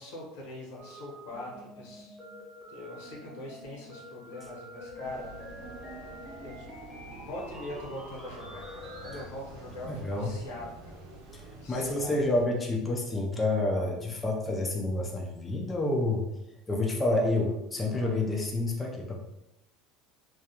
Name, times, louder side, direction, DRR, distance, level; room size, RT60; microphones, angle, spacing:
voice 1, 0.0-2.2 2.7-5.3 5.9-6.0 6.4-6.6 7.2-11.0 11.5-12.2, left 1 dB, 85° left, -3 dB, 1.0 m, -42 dB
sound 1, 0.8-9.2, equal, 15° right, 0.8 m, -46 dB
sound 2, 5.0-12.4, right 2 dB, 80° right, 0.5 m, -49 dB
voice 2, 9.8-10.3 11.3-16.3 16.7-19.2, left 2 dB, 15° left, 0 dB, 0.3 m, -29 dB
2.3 x 2.2 x 2.8 m, 0.90 s
cardioid pair, 155°, 0 cm